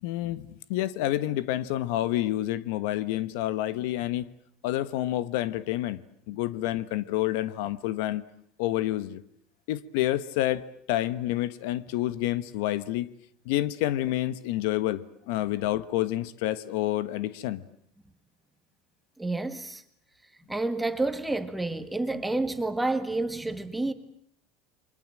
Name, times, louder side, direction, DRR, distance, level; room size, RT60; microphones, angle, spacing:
voice 1, 0.0-4.3 4.6-6.0 6.3-8.2 8.6-9.2 9.7-13.1 13.4-17.6, left 14 dB, 75° left, 1.2 m, -28 dB
voice 2, 19.2-19.8 20.5-23.9, right 2 dB, 5° right, 1.7 m, -29 dB
30.0 x 24.0 x 7.6 m
supercardioid pair, 140°, 0 cm